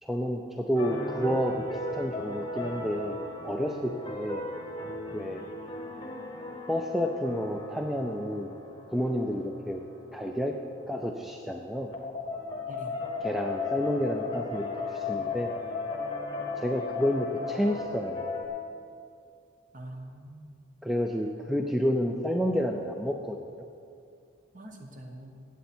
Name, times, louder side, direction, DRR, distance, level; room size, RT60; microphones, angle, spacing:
voice 1, 0.0-3.2 3.4-4.4 5.1-5.4 6.7-8.5 8.9-9.8 10.1-10.6 10.9-11.9 13.2-15.5 16.6-18.3 20.8-23.4, equal, ahead, 2 dB, 0.4 m, -30 dB
sound 1, 0.8-18.5, left 3 dB, 20° left, 1.0 m, -37 dB
voice 2, 12.7-13.0 19.7-20.5 24.5-25.4, right 1 dB, 40° right, 3 dB, 1.2 m, -44 dB
17.0 x 8.2 x 4.4 m, 2.4 s
head